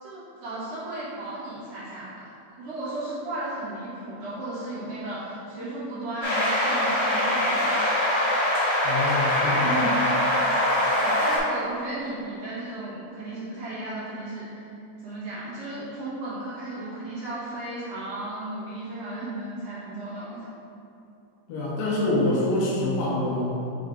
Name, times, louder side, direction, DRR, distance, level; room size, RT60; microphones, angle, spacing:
voice 1, 0.0-8.0 9.6-10.4 11.0-14.7 15.0-20.5, right 2 dB, 50° right, -11 dB, 2.3 m, -35 dB
sound 1, 6.2-11.4, left 1 dB, 55° left, 2.1 m, -23 dB
voice 2, 8.8-9.7 21.5-23.4, left 2 dB, 85° left, -5 dB, 2.9 m, -25 dB
6.3 x 4.6 x 3.7 m, 2.9 s
omnidirectional pair, 3.8 m